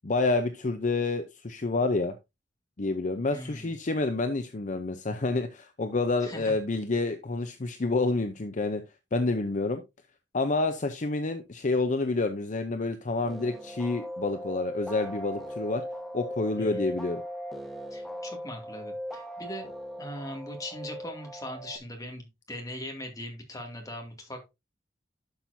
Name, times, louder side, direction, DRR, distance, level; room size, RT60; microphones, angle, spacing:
voice 1, 0.0-2.1 2.8-8.8 9.1-9.8 10.3-15.8 16.1-17.2, left 3 dB, 45° left, 0.7 m, -28 dB
voice 2, 3.3-3.7 6.2-6.5 16.6-16.9 17.9-19.7 20.0-24.5, left 1 dB, 20° left, 2.3 m, -40 dB
sound 1, 13.3-21.8, equal, ahead, 1.2 m, -39 dB
11.5 x 5.9 x 2.7 m
head